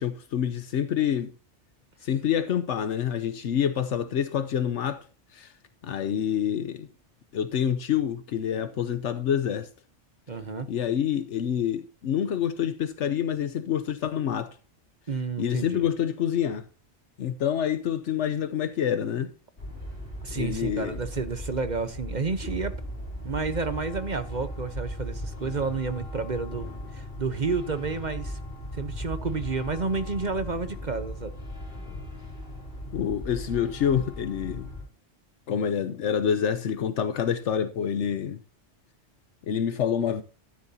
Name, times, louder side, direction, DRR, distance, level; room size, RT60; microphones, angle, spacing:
voice 1, 0.0-1.3 2.0-5.1 5.3-5.5 5.8-6.9 7.3-9.7 10.7-14.6 15.4-16.7 17.2-19.3 20.3-21.0 32.9-34.7 35.5-38.4 39.5-40.2, left 9 dB, 80° left, 1.1 m, -27 dB
voice 2, 10.3-10.7 15.1-15.9 20.2-22.7 23.2-28.4 28.7-31.3, right 4 dB, 40° right, 1.0 m, -30 dB
sound 1, 19.6-34.8, equal, 50° left, 3.4 m, -37 dB
13.5 x 10.0 x 2.8 m
omnidirectional pair, 1.2 m